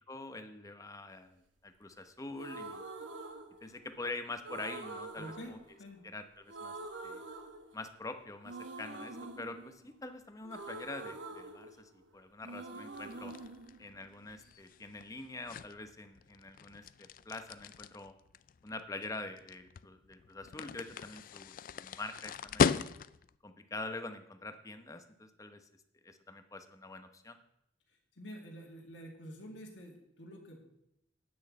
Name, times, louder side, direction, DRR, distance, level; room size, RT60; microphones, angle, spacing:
voice 1, 0.1-2.9 3.6-5.6 6.0-6.7 7.0-7.2 7.7-13.3 13.8-18.1 18.6-22.9 23.4-25.7 26.0-27.4, left 2 dB, 20° left, 8 dB, 0.9 m, -45 dB
sound 1, 2.3-4.0 4.4-6.2 6.5-8.1 8.4-12.2 12.4-14.5, right 2 dB, 80° right, 1.4 m, -46 dB
voice 2, 5.2-6.0 27.9-30.6, equal, 75° left, 0 dB, 2.2 m, -48 dB
sound 2, 12.9-23.4, left 6 dB, 50° left, 0.3 m, -37 dB
9.5 x 6.4 x 8.7 m, 0.79 s
head